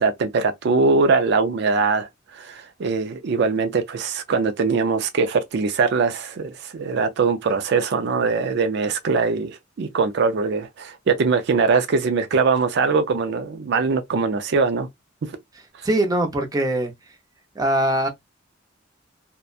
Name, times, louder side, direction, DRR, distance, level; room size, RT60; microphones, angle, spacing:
voice 1, 0.0-14.9 15.2-15.3 15.8-15.9, right 4 dB, 60° right, 0.4 m, -22 dB
voice 2, 15.8-16.9 17.6-18.1, right 1 dB, 20° right, 0.6 m, -21 dB
2.7 x 2.1 x 2.3 m
head